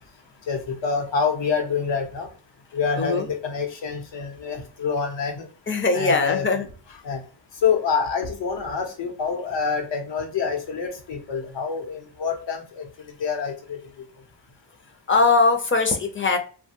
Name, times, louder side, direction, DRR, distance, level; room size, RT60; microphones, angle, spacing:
voice 1, 0.5-2.3 2.7-5.5 5.9-6.4 7.0-7.2 7.6-12.8 13.2-13.8, left 5 dB, 85° left, 3 dB, 0.9 m, -26 dB
voice 2, 3.0-3.3 5.7-6.7 15.1-16.4, left 4 dB, 30° left, 5 dB, 0.5 m, -20 dB
3.1 x 2.2 x 2.8 m, 0.38 s
wide cardioid pair, 140°, 43 cm